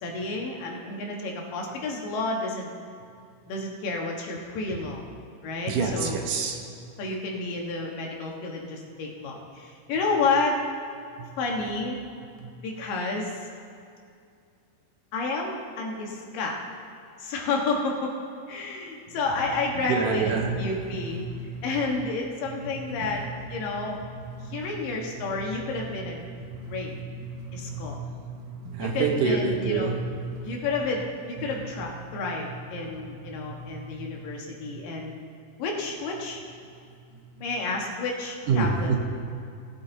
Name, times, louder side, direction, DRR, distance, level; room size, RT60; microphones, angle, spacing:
voice 1, 0.0-2.7 3.5-5.0 5.4-6.2 7.0-10.6 11.4-12.0 12.6-13.4 15.1-16.6 17.2-18.1 18.5-21.2 21.6-23.2 23.5-24.0 24.5-26.2 26.7-26.9 27.5-28.0 28.8-29.9 30.4-35.2 35.6-36.4 37.4-38.9, left 3 dB, 90° left, 0 dB, 3.1 m, -30 dB
voice 2, 5.7-6.8 11.2-11.3 12.4-12.5 19.1-19.5 19.7-22.0 22.5-30.9 31.4-34.8 36.9-37.5 38.5-39.0, right 4 dB, 75° right, 3 dB, 2.5 m, -31 dB
18.0 x 8.8 x 3.9 m, 2.4 s
omnidirectional pair, 3.8 m